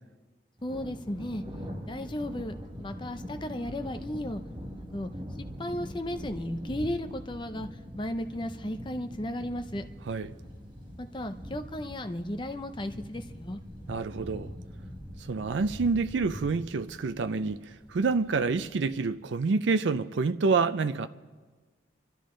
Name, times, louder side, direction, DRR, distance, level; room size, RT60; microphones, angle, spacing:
voice 1, 0.6-1.4 1.9-2.5 2.8-4.4 4.7-5.1 5.4-9.8 11.0-13.6, left 1 dB, 25° left, 0.7 m, -35 dB
Thunder, 0.6-19.0, equal, 25° right, 1.7 m, -43 dB
voice 2, 13.9-14.5 15.3-17.6 17.9-21.1, right 4 dB, 75° right, 0.5 m, -27 dB
29.0 x 12.5 x 3.8 m
head